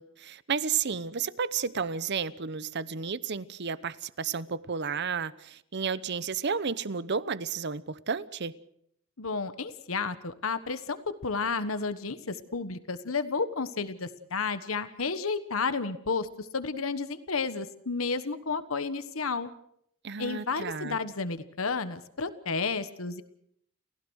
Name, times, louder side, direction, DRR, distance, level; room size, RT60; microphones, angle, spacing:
voice 1, 0.0-8.6 20.0-21.0, right 6 dB, 55° right, 0.9 m, -32 dB
voice 2, 9.2-19.5 20.2-23.2, left 4 dB, 85° left, 1.3 m, -32 dB
30.0 x 16.0 x 6.4 m
head